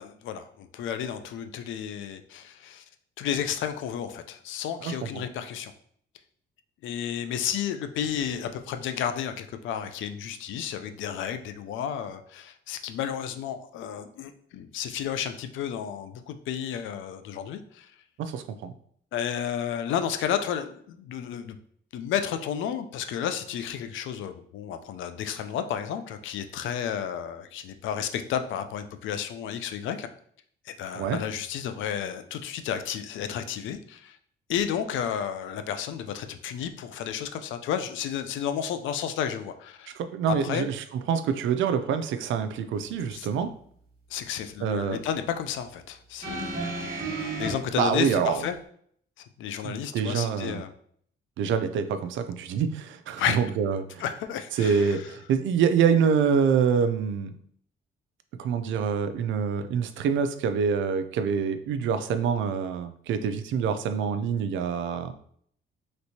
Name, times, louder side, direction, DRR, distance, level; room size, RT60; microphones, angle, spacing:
voice 1, 0.0-2.8 3.2-5.7 6.8-17.9 19.1-21.6 21.9-30.1 30.7-34.2 34.5-39.9 40.3-40.7 43.1-43.3 44.1-47.0 47.4-48.6 49.2-50.7 53.2-53.4 54.0-55.1, left 9 dB, 75° left, 9 dB, 0.4 m, -32 dB
voice 2, 18.2-18.7 31.0-31.2 39.9-43.5 44.6-45.0 47.7-48.4 49.6-50.6 51.4-54.0 54.6-57.3 58.4-65.1, right 6 dB, 75° right, 10 dB, 0.4 m, -26 dB
sound 1, 46.2-47.5 48.5-48.6, right 3 dB, 50° right, 1.1 m, -32 dB
3.2 x 3.0 x 2.7 m, 0.63 s
cardioid pair, 90°, 20 cm